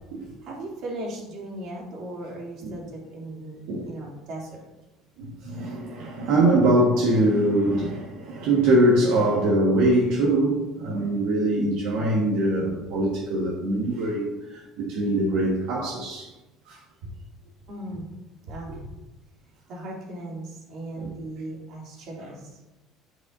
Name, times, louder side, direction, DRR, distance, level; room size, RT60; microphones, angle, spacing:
voice 1, 0.4-4.7 17.7-18.1 18.5-18.9 19.7-22.6, right 1 dB, 55° right, -3 dB, 2.8 m, -37 dB
voice 2, 5.2-16.3 16.7-16.8 18.7-18.8 21.0-21.1, right 1 dB, 80° right, -3 dB, 1.5 m, -23 dB
8.1 x 7.8 x 2.7 m, 1.0 s
cardioid pair, 145°, 0 cm